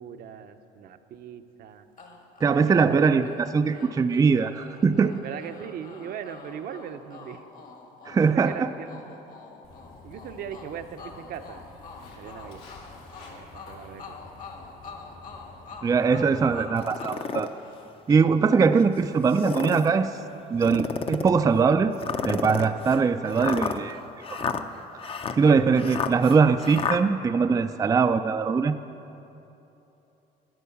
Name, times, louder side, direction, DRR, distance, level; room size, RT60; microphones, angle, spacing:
voice 1, 0.0-1.9 2.5-3.4 5.2-7.4 8.3-9.1 10.0-11.7 12.2-12.6 13.3-14.2, right 8 dB, 65° right, 8 dB, 0.7 m, -39 dB
sound 1, 2.0-18.2, left 3 dB, 50° left, 1.6 m, -46 dB
voice 2, 2.4-5.2 8.1-8.7 15.8-17.5 18.1-20.1 20.5-21.9 22.2-24.0 24.3-24.4 25.3-28.7, right 5 dB, 20° right, 8 dB, 0.3 m, -21 dB
Walk footsteps, 9.6-16.7, left 3 dB, 80° left, 2.7 m, -49 dB
sound 2, 16.8-17.5 18.1-18.2 19.2-19.9 20.6-21.4 22.0-27.0, left 6 dB, 35° left, 0.6 m, -31 dB
12.5 x 9.1 x 7.0 m, 3.0 s
cardioid pair, 110°, 17 cm